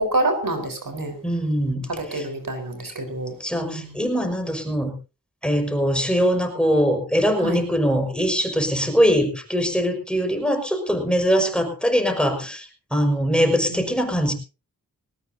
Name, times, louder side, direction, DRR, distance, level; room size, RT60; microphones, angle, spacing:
voice 1, 0.1-1.1 2.1-3.3 3.6-3.9 7.4-7.6, right 2 dB, 70° right, 5 dB, 4.3 m, -26 dB
voice 2, 1.2-2.3 3.4-4.9 5.4-12.7 12.9-14.3, equal, 5° left, 5 dB, 5.4 m, -22 dB
19.5 x 19.0 x 2.8 m, 0.33 s
wide cardioid pair, 60°, 35 cm